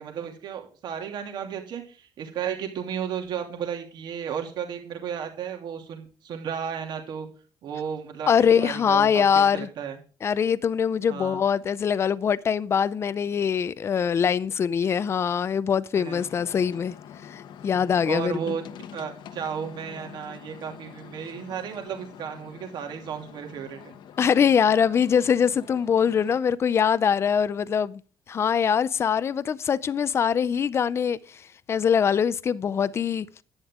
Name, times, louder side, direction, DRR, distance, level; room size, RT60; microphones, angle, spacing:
voice 1, 0.0-7.3 7.6-10.0 11.1-11.4 15.9-16.3 18.0-18.6 18.9-23.9, right 8 dB, 55° right, 2.7 m, -34 dB
voice 2, 8.3-9.7 10.2-16.9 17.3-18.6 24.2-28.0 28.3-31.2 31.7-33.3, left 7 dB, 30° left, 0.5 m, -23 dB
sound 1, 16.2-26.4, left 8 dB, 60° left, 1.0 m, -45 dB
11.0 x 9.6 x 3.7 m
cardioid pair, 160°, 9 cm